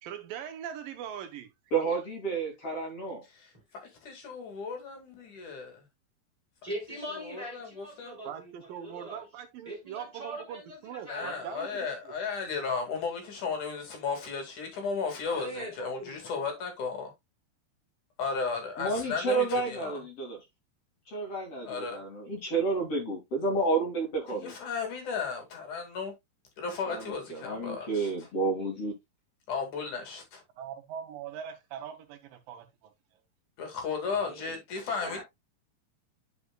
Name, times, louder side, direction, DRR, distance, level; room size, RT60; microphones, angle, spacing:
voice 1, 0.0-1.5 8.3-12.2 30.6-32.9, right 9 dB, 80° right, 2.6 m, -41 dB
voice 2, 1.7-3.2 18.8-20.4 21.1-24.5 26.9-28.9, right 3 dB, 45° left, 2.9 m, -30 dB
voice 3, 4.2-5.8 7.2-8.2 11.1-17.1 18.2-20.0 21.6-22.0 24.3-26.1 26.6-28.1 29.5-30.4 33.6-35.2, left 5 dB, 60° left, 3.4 m, -34 dB
voice 4, 6.6-9.3 9.7-11.8 15.3-16.6 34.1-35.2, equal, 10° right, 3.7 m, -42 dB
9.6 x 6.1 x 2.3 m
omnidirectional pair, 4.1 m